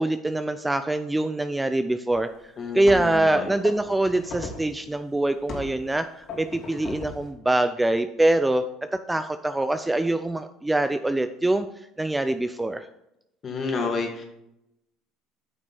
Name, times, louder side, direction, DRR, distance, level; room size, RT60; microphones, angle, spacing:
voice 1, 0.0-2.3 2.7-8.6 9.1-11.7 12.0-12.8, right 1 dB, 10° right, 9 dB, 0.5 m, -24 dB
sound 1, 2.1-2.2 2.8-3.2 3.6-4.7 5.5-5.8 6.3-7.3, left 3 dB, 55° left, 2.5 m, -37 dB
voice 2, 2.6-3.5 13.4-14.2, left 4 dB, 40° left, 2 dB, 2.2 m, -30 dB
9.5 x 6.1 x 4.4 m, 0.83 s
supercardioid pair, 90°, 0 cm